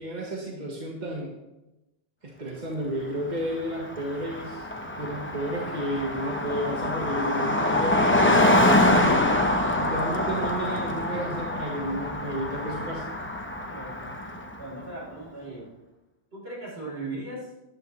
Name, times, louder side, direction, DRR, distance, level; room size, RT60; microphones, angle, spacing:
voice 1, 0.0-1.3 2.2-4.7 5.0-8.5 8.9-9.4 9.8-13.0, right 1 dB, 40° right, -2 dB, 1.6 m, -32 dB
Car passing by, 3.3-3.4 3.6-14.6, left 1 dB, 10° left, 0.9 m, -25 dB
voice 2, 13.7-14.1 14.6-15.7 16.3-17.5, right 2 dB, 65° right, -4 dB, 4.3 m, -38 dB
14.0 x 11.0 x 3.3 m, 1.0 s
omnidirectional pair, 1.1 m